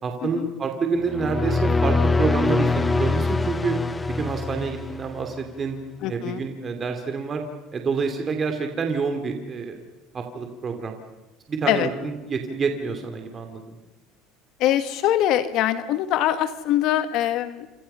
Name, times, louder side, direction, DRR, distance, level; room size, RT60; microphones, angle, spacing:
voice 1, 0.0-3.8 4.2-5.8 6.1-7.4 7.7-9.8 10.1-11.0 11.5-13.8, right 5 dB, 25° right, 5 dB, 2.7 m, -28 dB
sound 1, 1.0-5.4, left 3 dB, 15° left, 0.8 m, -23 dB
voice 2, 6.0-6.4 11.7-11.9 14.6-17.7, left 12 dB, 55° left, 11 dB, 1.5 m, -23 dB
27.5 x 27.0 x 5.6 m, 1.0 s
cardioid pair, 135°, 0 cm